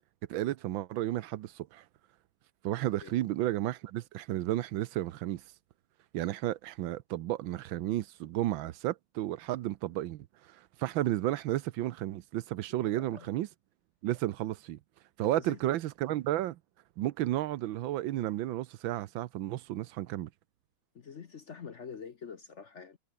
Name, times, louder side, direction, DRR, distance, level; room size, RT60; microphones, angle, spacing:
voice 1, 0.3-1.8 2.6-5.4 6.1-13.5 14.0-14.8 15.2-16.6 17.0-20.3, right 14 dB, 80° right, 1.5 m, -32 dB
voice 2, 12.8-13.3 15.3-15.6 20.9-23.0, left 6 dB, 50° left, 1.0 m, -46 dB
omnidirectional pair, 2.1 m